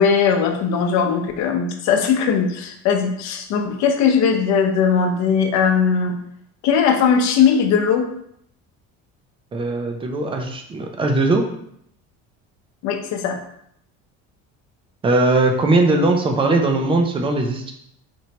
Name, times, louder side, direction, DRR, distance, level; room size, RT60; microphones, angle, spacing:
voice 1, 0.0-6.2 6.6-8.0 12.8-13.4, left 6 dB, 60° left, 5 dB, 0.7 m, -19 dB
voice 2, 9.5-11.4 15.0-17.7, right 2 dB, 15° right, 3 dB, 0.3 m, -19 dB
4.4 x 3.1 x 2.8 m, 0.72 s
cardioid pair, 160°, 31 cm